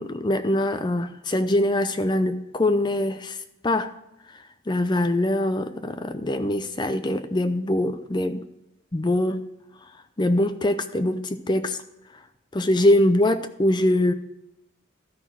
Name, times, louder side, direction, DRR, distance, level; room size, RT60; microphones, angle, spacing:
voice 1, 0.0-3.4 3.6-3.9 4.7-8.4 8.9-9.4 10.2-11.8 12.5-14.1, left 1 dB, 25° left, 0.5 m, -23 dB
13.0 x 6.0 x 6.1 m
head